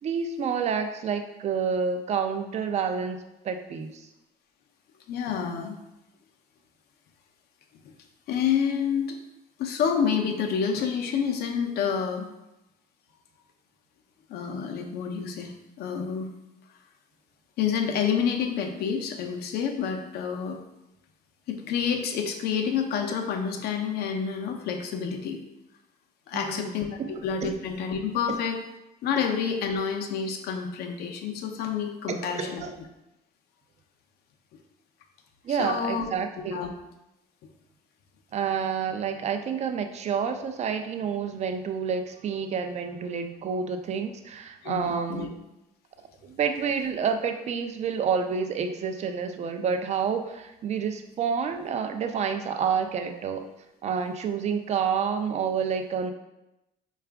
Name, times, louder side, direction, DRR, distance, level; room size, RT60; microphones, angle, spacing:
voice 1, 0.0-3.2 3.4-4.1 26.3-27.5 28.3-28.4 32.1-32.8 35.4-36.6 38.3-45.4 46.2-53.4 53.8-56.1, right 6 dB, 40° right, 7 dB, 0.4 m, -29 dB
voice 2, 5.1-5.8 8.3-9.1 9.6-12.3 14.3-15.5 15.8-16.3 17.6-20.6 21.5-25.4 26.3-28.6 29.0-32.6 35.5-36.1 36.5-36.7 44.6-45.3, left 7 dB, 70° left, 3 dB, 0.6 m, -28 dB
4.6 x 2.4 x 3.4 m, 0.93 s
cardioid pair, 110°, 17 cm